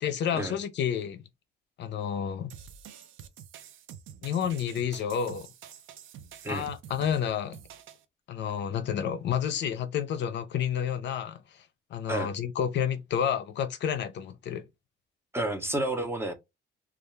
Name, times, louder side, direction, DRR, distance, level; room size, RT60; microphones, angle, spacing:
voice 1, 0.0-1.2 1.8-2.5 4.2-5.5 6.5-7.6 8.3-11.6 11.9-14.6, left 8 dB, 65° left, 0.5 m, -30 dB
sound 1, 2.5-8.0, right 9 dB, 75° right, 0.5 m, -47 dB
voice 2, 15.3-16.3, right 1 dB, 10° right, 0.6 m, -30 dB
2.3 x 2.2 x 3.0 m
cardioid pair, 90°, 20 cm